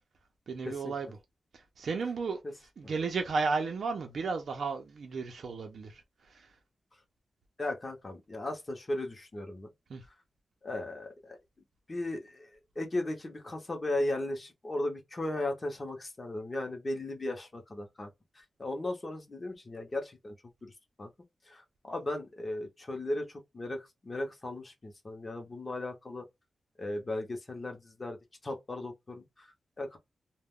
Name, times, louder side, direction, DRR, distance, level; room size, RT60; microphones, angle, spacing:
voice 1, 0.5-1.2 1.5-2.4 2.8-6.6 9.9-10.0, right 4 dB, 70° right, 0.5 m, -34 dB
voice 2, 7.6-9.7 10.6-11.4 11.9-18.1 18.3-20.4 20.6-20.7 21.0-21.1 21.4-26.3 26.8-28.2 28.4-30.0, left 1 dB, 30° left, 0.7 m, -36 dB
2.3 x 2.1 x 3.4 m
wide cardioid pair, 140°, 0 cm